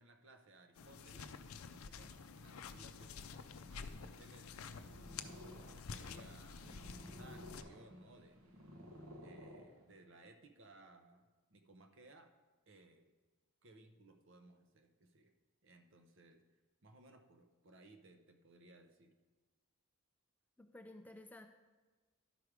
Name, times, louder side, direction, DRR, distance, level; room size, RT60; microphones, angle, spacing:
voice 1, 0.0-3.3 3.6-4.9 5.2-8.6 9.2-12.3 12.7-13.1 13.6-15.3 15.6-16.4 16.8-19.1, right 2 dB, 55° right, 6 dB, 0.7 m, -62 dB
sound 1, 0.8-7.6, left 5 dB, 75° left, 0.5 m, -50 dB
Purr, 4.6-10.2, equal, 75° right, 1.1 m, -55 dB
voice 2, 20.6-21.5, left 1 dB, 5° left, 5 dB, 0.3 m, -54 dB
11.5 x 4.7 x 4.9 m, 1.3 s
head